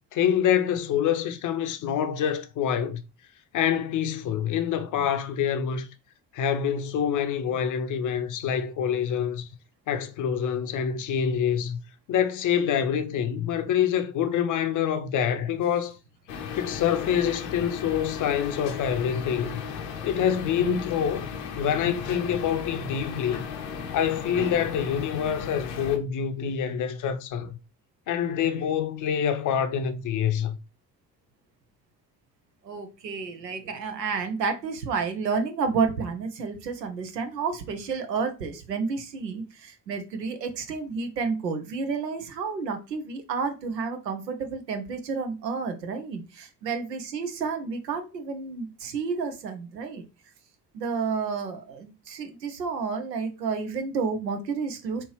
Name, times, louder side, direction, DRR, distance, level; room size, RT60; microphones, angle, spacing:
voice 1, 0.1-3.0 3.5-5.9 6.3-9.5 9.9-11.8 12.1-16.0 16.6-19.6 20.0-21.3 21.6-23.5 23.9-27.6 28.1-30.6, left 8 dB, 40° left, 0.6 m, -26 dB
sound 1, 16.3-26.0, left 6 dB, 75° left, 0.8 m, -36 dB
voice 2, 32.6-50.0 50.7-55.0, right 5 dB, 85° right, 0.7 m, -30 dB
4.3 x 2.8 x 3.1 m
figure-of-eight pair, 45°, 49 cm